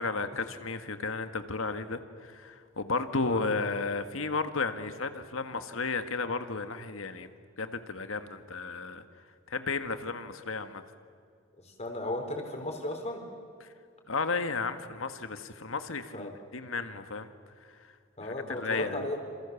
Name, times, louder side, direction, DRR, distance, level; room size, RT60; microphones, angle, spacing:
voice 1, 0.0-7.3 7.6-9.0 9.5-10.8 13.6-13.7 14.1-17.3 18.2-19.1, left 4 dB, 80° left, 9 dB, 1.8 m, -33 dB
voice 2, 11.6-13.2 16.1-16.3 18.2-19.2, left 1 dB, 35° left, 3 dB, 4.7 m, -35 dB
28.5 x 27.5 x 7.2 m, 2.3 s
head